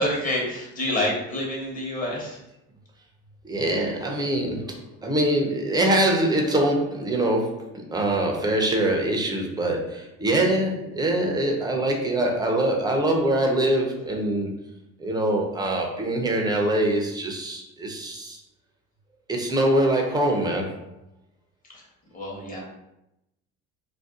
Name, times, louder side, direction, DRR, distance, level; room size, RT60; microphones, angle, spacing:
voice 1, 0.0-2.4 21.7-21.9 22.1-22.6, left 1 dB, 30° left, -3 dB, 1.1 m, -27 dB
voice 2, 3.4-14.5 15.0-18.4 19.3-20.8, right 1 dB, 15° right, 1 dB, 0.6 m, -24 dB
2.6 x 2.2 x 3.5 m, 0.86 s
cardioid pair, 110°, 30 cm